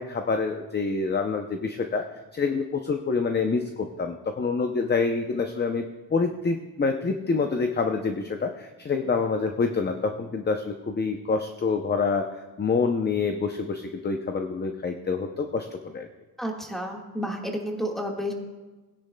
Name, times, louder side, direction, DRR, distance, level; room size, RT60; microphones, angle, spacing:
voice 1, 0.0-2.1 2.3-5.8 6.1-12.3 12.6-16.1, left 4 dB, 25° left, 5 dB, 0.6 m, -27 dB
voice 2, 16.4-18.3, equal, ahead, 0 dB, 1.6 m, -31 dB
19.0 x 10.0 x 2.2 m, 1.2 s
wide cardioid pair, 125°, 38 cm